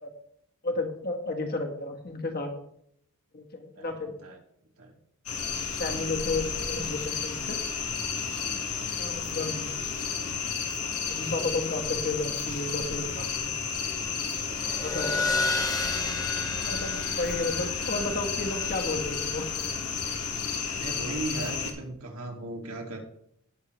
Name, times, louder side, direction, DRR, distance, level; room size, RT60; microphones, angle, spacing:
voice 1, 0.6-2.5 3.3-4.1 5.8-7.6 9.0-9.7 11.1-13.5 14.8-15.4 16.6-19.5, left 2 dB, 45° left, 3 dB, 1.7 m, -32 dB
voice 2, 3.8-4.4 4.8-4.9 5.8-6.4 6.7-7.1 8.4-8.9 14.3-14.7 20.7-23.0, right 2 dB, 70° right, 1 dB, 2.4 m, -39 dB
sound 1, 5.3-21.7, left 6 dB, 85° left, 1.8 m, -32 dB
sound 2, 14.3-21.4, left 3 dB, 15° left, 0.9 m, -34 dB
18.0 x 6.6 x 3.2 m, 0.71 s
head